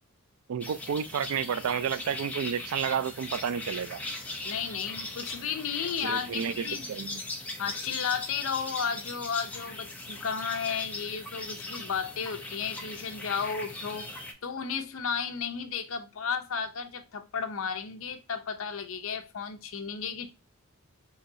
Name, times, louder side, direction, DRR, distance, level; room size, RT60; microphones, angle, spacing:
voice 1, 0.5-4.0 6.0-7.2, right 7 dB, 70° right, 0.3 m, -31 dB
sound 1, 0.6-14.3, left 2 dB, 5° left, 0.6 m, -39 dB
voice 2, 4.4-6.9 7.6-20.3, left 6 dB, 65° left, 0.6 m, -33 dB
3.9 x 3.0 x 2.7 m
head